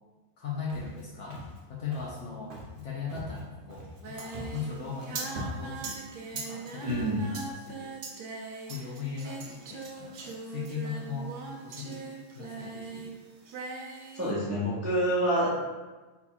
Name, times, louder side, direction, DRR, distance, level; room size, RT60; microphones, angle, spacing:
voice 1, 0.4-1.4 1.7-6.1 6.3-8.0 8.7-11.3 11.6-12.1 12.3-13.1, left 5 dB, 65° left, -3 dB, 0.8 m, -39 dB
Walk footsteps, 0.7-1.0 1.3-1.6 1.9-2.2 2.5-2.8 3.1-4.0 4.3-4.6 4.9-5.0 5.3-5.8 6.4-6.5 6.8-7.1, equal, 45° right, 0.8 m, -42 dB
Singing, 4.0-13.2 13.4-14.3, right 3 dB, 80° right, 0.4 m, -40 dB
voice 2, 6.8-7.2 14.1-15.5, right 1 dB, 20° right, -7 dB, 0.4 m, -27 dB
4.0 x 2.3 x 4.2 m, 1.2 s
omnidirectional pair, 1.6 m